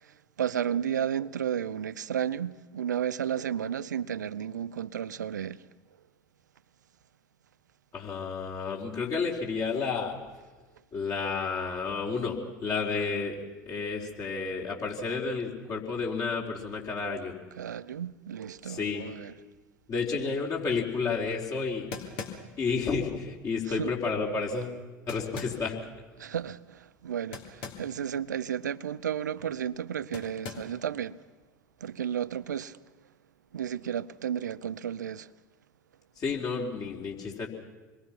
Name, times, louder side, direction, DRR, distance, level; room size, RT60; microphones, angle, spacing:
voice 1, 0.4-5.6 17.6-19.3 23.8-23.9 26.2-31.2 31.8-32.8 33.5-35.3, right 9 dB, 80° right, 0.6 m, -33 dB
voice 2, 7.9-10.1 10.9-13.4 13.7-17.3 18.6-19.0 19.9-21.9 22.6-24.8 25.1-25.8 36.2-37.5, left 4 dB, 35° left, 4.4 m, -31 dB
sound 1, 21.3-21.4 21.9-22.7 25.1-25.7 27.3-27.9 28.2-28.3 30.1-30.8, left 5 dB, 55° left, 3.1 m, -40 dB
26.5 x 21.5 x 6.0 m
figure-of-eight pair, 75°, 10 cm